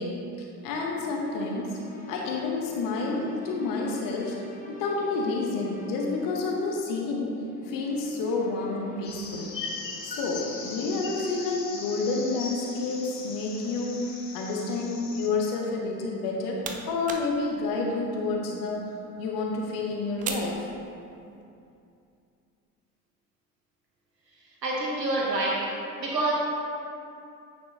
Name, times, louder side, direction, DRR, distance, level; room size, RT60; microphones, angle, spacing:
voice 1, 0.0-1.8 2.1-4.4 4.7-7.4 7.7-9.5 10.0-20.7, left 3 dB, 40° left, -1 dB, 1.0 m, -29 dB
sound 1, 0.9-10.7, left 2 dB, 15° left, 0.8 m, -48 dB
sound 2, 9.0-15.3, left 4 dB, 90° left, 0.7 m, -39 dB
sound 3, 16.1-21.4, right 5 dB, 20° right, 0.3 m, -41 dB
voice 2, 24.4-25.6 26.0-26.3, right 2 dB, 85° right, -4 dB, 1.0 m, -27 dB
9.4 x 4.5 x 2.8 m, 2.6 s
figure-of-eight pair, 65°, 49 cm